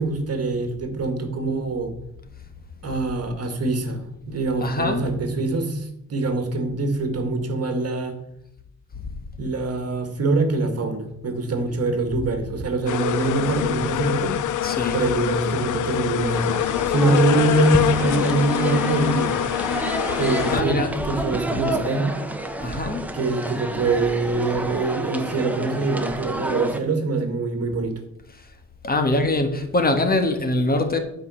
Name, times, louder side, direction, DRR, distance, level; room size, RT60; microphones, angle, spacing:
voice 1, 0.0-1.9 2.8-8.2 9.4-14.3 14.9-19.4 20.1-22.1 23.1-28.0, right 3 dB, 50° right, 1.9 m, -24 dB
voice 2, 4.6-5.0 14.6-15.0 20.5-20.9 22.6-23.1 28.8-31.0, left 2 dB, 30° left, 1.4 m, -23 dB
sound 1, 12.9-20.6, left 12 dB, 75° left, 0.6 m, -24 dB
sound 2, 16.3-26.8, right 1 dB, 5° right, 1.0 m, -30 dB
11.5 x 5.3 x 6.3 m
cardioid pair, 125°, 31 cm